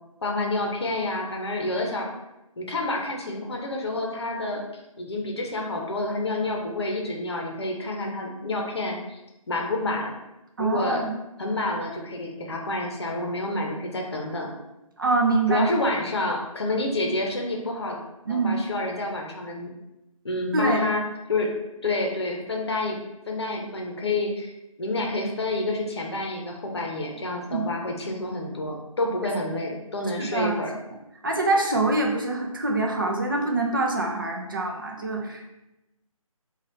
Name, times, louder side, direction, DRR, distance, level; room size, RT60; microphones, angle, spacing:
voice 1, 0.2-2.1 2.6-9.2 9.5-10.1 10.6-11.0 11.4-14.5 15.5-18.0 18.3-19.7 20.2-21.0 21.3-21.5 21.8-23.0 23.3-24.5 24.8-30.7, left 2 dB, 50° left, 1 dB, 0.8 m, -28 dB
voice 2, 10.6-11.2 15.0-15.7 18.3-18.6 20.5-20.9 27.5-27.7 30.2-30.5 31.2-35.5, right 2 dB, 35° right, 0 dB, 0.5 m, -24 dB
5.3 x 2.4 x 3.0 m, 0.94 s
figure-of-eight pair, 155°, 18 cm